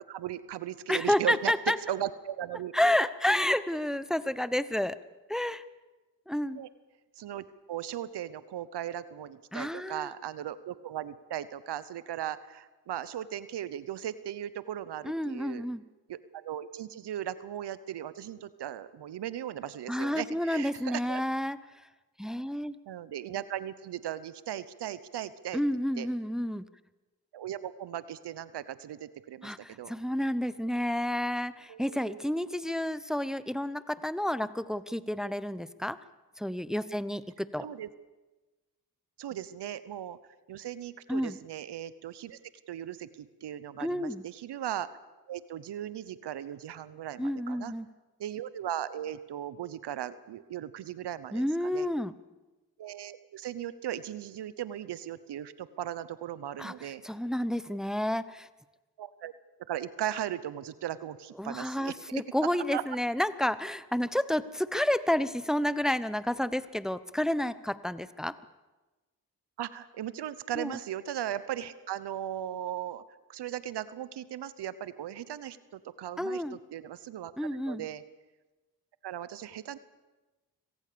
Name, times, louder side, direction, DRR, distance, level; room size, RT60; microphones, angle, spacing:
voice 1, 0.1-1.5 1.9-2.7 6.5-6.7 7.2-15.6 16.1-21.2 22.9-25.6 26.0-26.1 27.3-29.9 31.7-32.3 37.6-37.9 39.2-40.2 40.5-42.4 42.7-44.9 45.3-47.7 48.2-51.9 52.8-57.0 59.0-59.3 59.7-62.2 62.7-62.8 69.6-73.0 73.3-76.4 76.7-78.0 79.0-79.8, right 11 dB, 85° right, 16 dB, 1.0 m, -37 dB
voice 2, 0.9-1.8 2.7-5.0 5.3-5.6 6.3-6.6 9.5-10.1 15.0-15.8 19.9-21.6 22.2-22.7 25.5-26.6 29.4-36.0 36.4-37.7 41.1-41.4 43.8-44.2 47.2-47.9 51.3-52.1 56.6-58.5 61.4-68.4 70.6-70.8 76.2-76.6 77.4-77.8, left 1 dB, ahead, 15 dB, 0.9 m, -30 dB
25.5 x 18.0 x 6.9 m, 1.1 s
cardioid pair, 50°, 40 cm